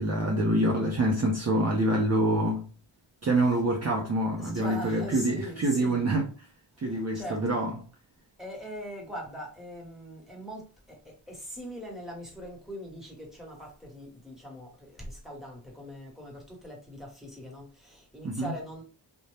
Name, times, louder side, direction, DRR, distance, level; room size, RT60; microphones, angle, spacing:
voice 1, 0.0-2.7 3.2-6.5 6.8-7.8 18.2-18.5, right 1 dB, 35° right, 0.6 m, -26 dB
voice 2, 4.4-6.1 6.9-7.7 8.4-18.8, equal, ahead, 1.2 m, -41 dB
2.6 x 2.1 x 3.2 m
cardioid pair, 65°, 47 cm